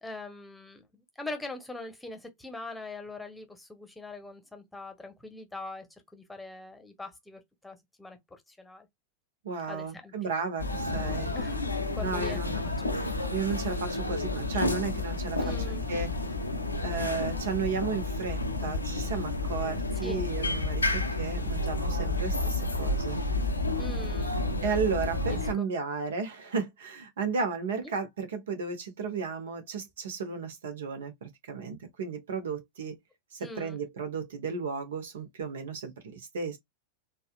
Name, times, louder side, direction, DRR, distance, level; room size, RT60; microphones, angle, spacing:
voice 1, 0.0-5.9 6.1-8.9 9.7-10.1 11.3-12.4 12.8-13.2 15.4-15.8 20.0-20.3 23.8-24.4 25.3-25.7 27.8-27.9 33.4-33.8, left 2 dB, 5° left, 1.0 m, -42 dB
voice 2, 9.4-11.3 12.0-12.7 13.3-15.5 15.9-16.1 16.8-23.2 24.6-33.0 33.3-36.6, right 5 dB, 60° right, 1.1 m, -34 dB
sound 1, 10.6-25.5, left 2 dB, 80° left, 0.7 m, -30 dB
4.1 x 2.4 x 2.3 m
figure-of-eight pair, 90°, 0 cm